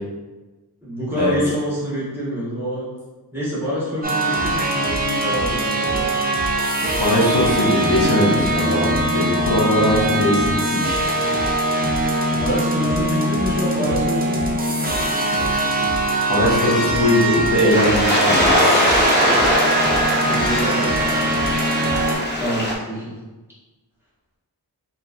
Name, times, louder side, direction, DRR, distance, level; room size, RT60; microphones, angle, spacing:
voice 1, 0.8-2.9 3.3-6.1 12.4-14.6 19.9-21.6 22.4-23.1, equal, 5° right, -10 dB, 1.1 m, -27 dB
sound 1, 4.0-22.2, right 1 dB, 25° right, 0.4 m, -22 dB
voice 2, 7.0-11.0 16.3-18.6, equal, 75° left, -6 dB, 0.8 m, -20 dB
sound 2, 17.7-22.7, equal, 25° left, 0.5 m, -20 dB
2.8 x 2.4 x 2.5 m, 1.2 s
wide cardioid pair, 70°, 40 cm